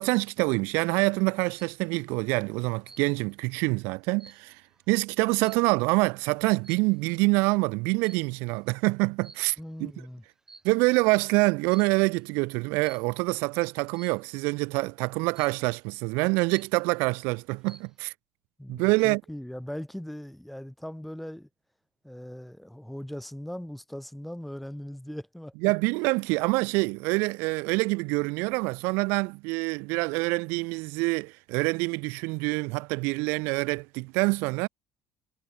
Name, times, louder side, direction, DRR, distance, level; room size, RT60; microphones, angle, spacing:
voice 1, 0.0-4.6 4.9-9.9 10.6-18.1 18.7-19.2 25.6-34.7, right 28 dB, 85° right, 0.7 m, -26 dB
sound 1, 1.2-1.8 2.8-3.4 3.8-6.0 6.6-7.0 8.0-8.4 9.2-9.8 10.3-11.0 11.7-12.1 12.8-13.2 13.9-14.4 15.3-15.8 16.2-16.3 16.5-17.1 17.5-18.0, right 3 dB, 15° right, 2.5 m, -53 dB
voice 2, 9.6-10.2 18.6-21.5 22.0-25.5, equal, ahead, 2.9 m, -39 dB
cardioid pair, 130°, 4 cm